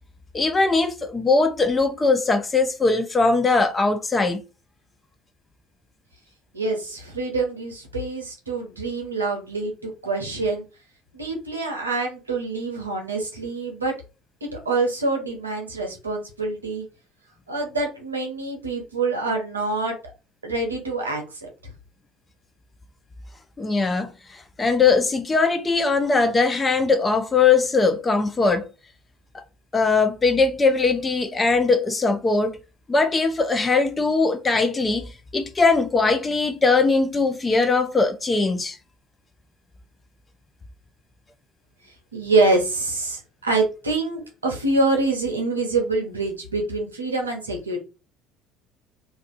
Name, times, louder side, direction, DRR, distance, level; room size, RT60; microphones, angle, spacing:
voice 1, 0.3-4.4 23.6-24.1 24.6-28.7 29.7-32.6 32.9-38.8, left 4 dB, 25° left, 0.5 m, -20 dB
voice 2, 6.5-10.6 11.1-13.9 14.4-16.8 17.5-20.0 20.4-21.5 42.1-47.8, right 3 dB, 85° right, 0.7 m, -25 dB
2.4 x 2.3 x 2.5 m
figure-of-eight pair, 60°, 0 cm